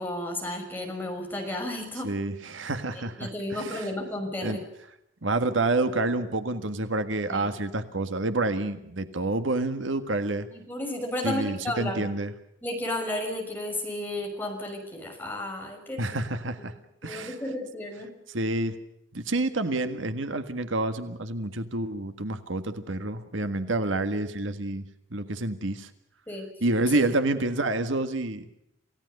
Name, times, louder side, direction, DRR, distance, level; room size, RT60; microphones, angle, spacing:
voice 1, 0.0-2.1 2.9-4.6 7.3-7.5 10.5-12.1 12.6-16.0 17.0-18.2 26.3-26.5 26.9-27.0, left 1 dB, 10° left, 1 dB, 6.2 m, -33 dB
voice 2, 2.0-3.9 4.4-4.6 5.2-10.5 11.2-12.3 16.0-16.7 17.0-17.4 18.3-18.8 19.1-24.8 25.1-25.9 26.6-28.5, right 2 dB, 80° right, 9 dB, 1.7 m, -28 dB
28.0 x 17.0 x 6.7 m, 0.81 s
head